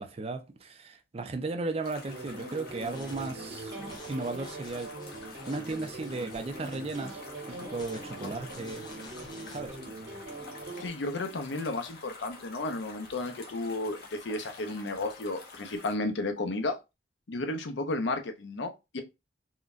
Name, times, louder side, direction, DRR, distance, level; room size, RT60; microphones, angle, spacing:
voice 1, 0.0-3.7 4.1-4.9 5.2-7.2 7.5-8.9 9.5-9.8, right 3 dB, 35° right, 0.4 m, -35 dB
sound 1, 1.8-15.9, left 3 dB, 60° left, 0.9 m, -49 dB
sound 2, 2.0-10.9, right 2 dB, 75° right, 1.2 m, -43 dB
sound 3, 2.8-10.6, left 1 dB, 25° left, 0.6 m, -51 dB
voice 2, 10.8-16.8 17.3-19.0, left 2 dB, 80° left, 0.6 m, -33 dB
3.7 x 2.2 x 2.4 m
head